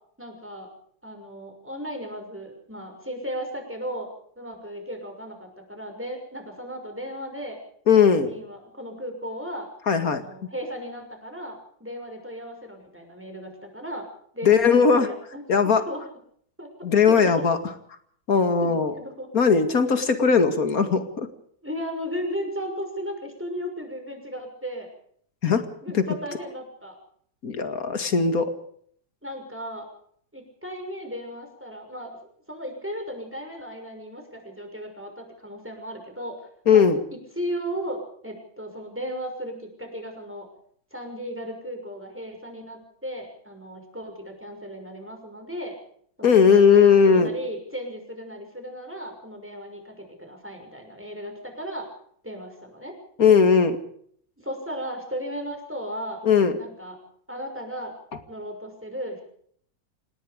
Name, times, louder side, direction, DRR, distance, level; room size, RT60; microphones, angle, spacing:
voice 1, 0.2-0.7 1.0-4.1 4.4-7.6 8.0-9.7 10.1-14.1 14.3-15.4 15.9-16.0 16.6-16.7 17.0-17.6 18.6-19.3 20.0-20.1 20.8-21.0 21.6-24.9 25.8-27.0 29.2-29.9 30.3-32.1 32.5-36.8 37.4-40.5 40.9-45.8 46.2-51.9 52.2-52.9 54.4-56.2 56.6-57.0 57.3-57.9 58.3-59.2, equal, 5° right, 4 dB, 6.1 m, -35 dB
voice 2, 7.9-8.3 9.9-10.2 14.4-15.1 15.5-15.9 16.8-17.6 18.3-18.9 19.3-21.3 25.4-25.7 25.9-26.1 27.4-28.5 36.7-37.0 46.2-47.3 53.2-53.8 56.2-56.6, left 6 dB, 50° left, 8 dB, 2.6 m, -18 dB
27.5 x 18.5 x 5.1 m, 0.63 s
omnidirectional pair, 2.0 m